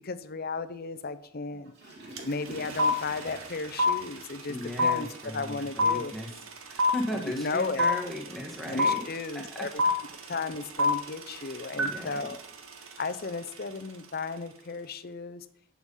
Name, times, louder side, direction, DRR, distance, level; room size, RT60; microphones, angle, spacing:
voice 1, 0.0-1.7 2.2-6.1 7.3-8.0 8.7-9.7 10.2-12.4 13.0-15.5, left 4 dB, 45° left, 13 dB, 0.7 m, -34 dB
Water / Toilet flush, 1.5-6.8 7.3-7.4, right 2 dB, 50° right, 3.1 m, -47 dB
sound 1, 2.2-2.3 2.5-13.6, left 1 dB, 75° right, 1.7 m, -28 dB
voice 2, 4.5-6.3 6.7-9.0 9.3-9.9 11.3-12.3, left 1 dB, ahead, 0 dB, 1.5 m, -37 dB
11.0 x 7.2 x 5.5 m, 0.68 s
head